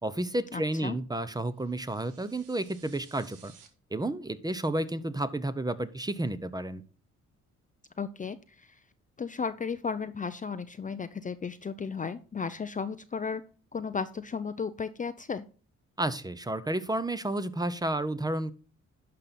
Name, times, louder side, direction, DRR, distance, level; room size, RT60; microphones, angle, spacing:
voice 1, 0.0-3.5 3.9-6.8 16.0-18.5, right 1 dB, 15° right, 14 dB, 0.8 m, -31 dB
voice 2, 0.5-0.9 8.0-8.7 9.2-13.4 13.7-15.4, left 5 dB, 25° left, 10 dB, 0.6 m, -34 dB
sound 1, 1.6-3.7, right 7 dB, 90° right, 1.8 m, -57 dB
11.5 x 5.3 x 4.2 m, 0.39 s
cardioid pair, 90°, 30 cm